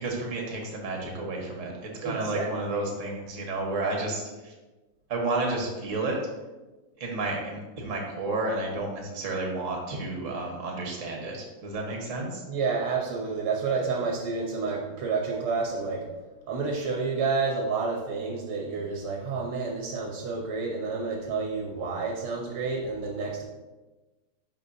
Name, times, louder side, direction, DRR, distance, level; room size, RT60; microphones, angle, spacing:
voice 1, 0.0-4.5 5.1-6.2 7.0-12.4, right 2 dB, 40° right, 0 dB, 1.4 m, -31 dB
voice 2, 2.0-2.5 12.5-16.1 16.5-23.4, right 4 dB, 90° right, 0 dB, 1.9 m, -29 dB
10.5 x 4.1 x 2.7 m, 1.2 s
omnidirectional pair, 2.3 m